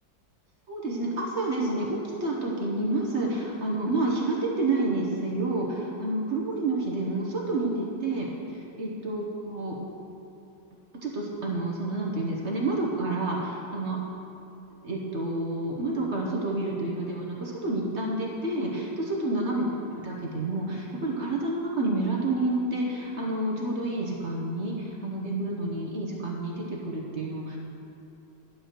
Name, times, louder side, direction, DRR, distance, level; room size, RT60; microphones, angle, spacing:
voice 1, 0.7-9.8 11.0-14.0 14.8-19.6 20.0-27.6, right 2 dB, 45° right, -2 dB, 1.2 m, -29 dB
11.0 x 4.8 x 6.7 m, 2.9 s
omnidirectional pair, 2.0 m